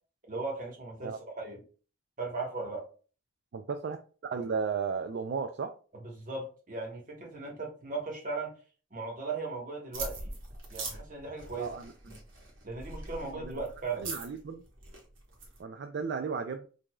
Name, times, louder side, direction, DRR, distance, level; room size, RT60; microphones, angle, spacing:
voice 1, 0.3-1.6 2.2-2.8 6.0-8.5 8.9-10.3 10.7-11.8 12.1-12.2 12.6-14.1, right 3 dB, 40° right, -1 dB, 1.2 m, -37 dB
voice 2, 3.5-4.0 4.2-5.7 11.6-11.9 13.2-13.6 14.0-14.6 15.6-16.7, right 5 dB, 55° right, 6 dB, 0.3 m, -34 dB
sound 1, 9.9-15.6, right 3 dB, 75° right, 1.2 m, -42 dB
4.7 x 2.6 x 2.3 m, 0.38 s
head